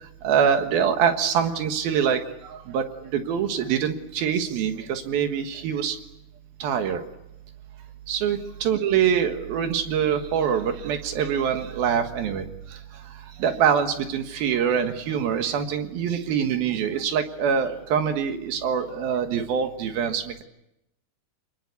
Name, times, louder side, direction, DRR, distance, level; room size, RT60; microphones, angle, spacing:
voice 1, 0.2-2.9 3.1-6.0 6.6-7.0 8.1-12.5 13.4-20.4, right 7 dB, 75° right, 7 dB, 3.3 m, -24 dB
28.5 x 20.5 x 8.3 m, 0.87 s
omnidirectional pair, 4.5 m